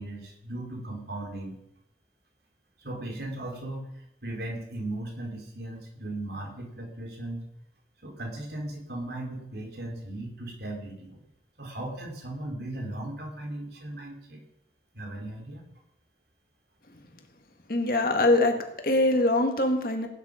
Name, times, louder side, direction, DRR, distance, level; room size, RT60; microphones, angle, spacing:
voice 1, 0.0-1.6 2.8-3.8 4.2-7.4 8.0-11.2 11.6-14.4 14.9-15.6, right 1 dB, 65° right, 1 dB, 3.5 m, -37 dB
voice 2, 17.7-20.1, left 2 dB, 50° left, 4 dB, 1.9 m, -23 dB
17.5 x 9.7 x 5.1 m, 0.79 s
head